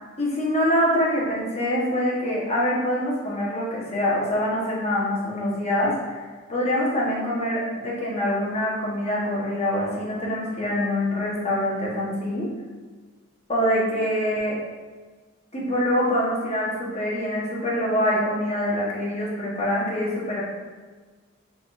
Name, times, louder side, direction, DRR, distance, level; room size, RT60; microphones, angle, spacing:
voice 1, 0.2-6.2 6.5-12.5 13.5-14.6 15.5-20.4, equal, 35° left, -5 dB, 1.0 m, -25 dB
4.2 x 3.6 x 2.4 m, 1.4 s
head